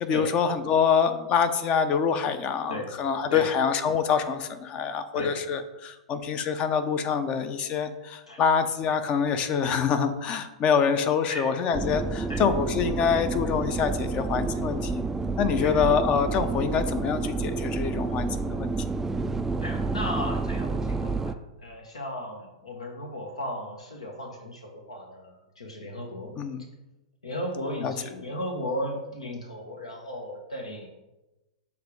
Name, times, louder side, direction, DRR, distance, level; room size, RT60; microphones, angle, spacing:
voice 1, 0.0-15.0 15.4-18.7 26.4-26.6 27.8-27.9, left 6 dB, 35° left, 10 dB, 0.6 m, -25 dB
sound 1, 11.7-21.3, right 3 dB, 10° right, 0.3 m, -29 dB
voice 2, 19.6-26.3 27.2-30.9, left 1 dB, 80° left, 2 dB, 1.2 m, -35 dB
7.2 x 3.6 x 4.8 m, 1.0 s
figure-of-eight pair, 100°, 3 cm